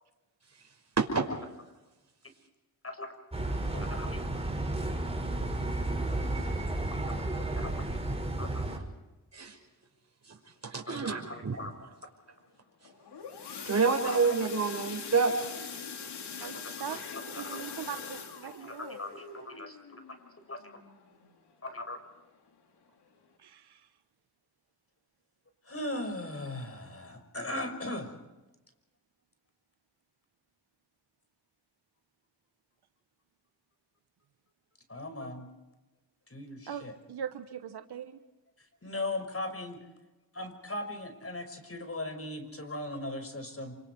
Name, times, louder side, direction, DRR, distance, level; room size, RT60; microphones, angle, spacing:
voice 1, 2.8-3.1 3.7-4.2 6.9-7.2 7.6-7.7 8.4-8.5 10.9-11.7 14.0-14.2 16.4-17.6 18.6-19.8 20.5-20.8 21.6-22.0 25.6-28.1 34.9-35.5 36.3-36.9 38.8-39.8 40.3-43.8, left 2 dB, 35° left, 7 dB, 5.8 m, -39 dB
sound 1, 3.3-8.8, right 2 dB, 15° right, 5.7 m, -32 dB
voice 2, 10.6-11.6 13.7-15.4, right 4 dB, 40° right, 2 dB, 5.7 m, -28 dB
sound 2, 12.8-21.5 21.9-22.2 22.5-22.6 23.1-23.2, left 6 dB, 85° left, 3.1 m, -43 dB
voice 3, 16.4-17.0 17.3-19.0 23.4-23.9 36.7-38.2, right 8 dB, 80° right, 9 dB, 1.3 m, -41 dB
27.5 x 26.5 x 4.7 m, 1.1 s
cardioid pair, 55°, 39 cm